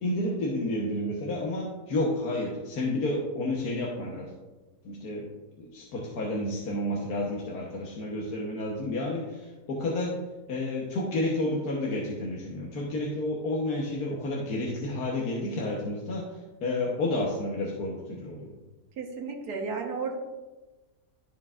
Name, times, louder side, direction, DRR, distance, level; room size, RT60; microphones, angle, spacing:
voice 1, 0.0-4.3 4.8-5.3 5.6-10.2 10.5-16.3 16.6-18.5, left 1 dB, 65° left, -3 dB, 1.5 m, -30 dB
voice 2, 19.0-20.2, right 4 dB, 70° right, 0 dB, 1.7 m, -33 dB
13.5 x 4.6 x 2.4 m, 1.2 s
omnidirectional pair, 1.8 m